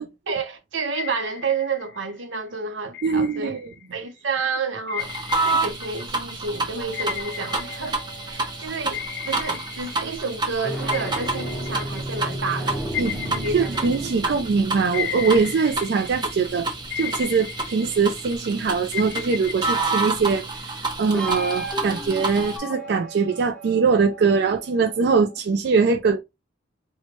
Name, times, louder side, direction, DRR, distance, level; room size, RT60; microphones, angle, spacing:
voice 1, 0.3-3.6 3.9-8.0 8.3-12.8 13.3-13.9 14.2-14.4, right 4 dB, 85° right, 0.8 m, -30 dB
sound 1, 0.9-2.2 2.9-4.1 4.9-8.5 8.9-10.6 10.9-14.5 14.9-16.5 16.9-18.5 18.9-20.6, left 10 dB, 60° left, 0.4 m, -36 dB
voice 2, 3.0-3.7 13.0-16.7 17.0-26.2, right 5 dB, 60° right, 0.3 m, -22 dB
sound 2, 5.0-22.6, right 3 dB, 25° right, 0.6 m, -29 dB
sound 3, 6.8-9.4 10.5-17.3 21.1-25.4, right 1 dB, 5° left, 1.0 m, -35 dB
4.3 x 2.1 x 2.9 m
head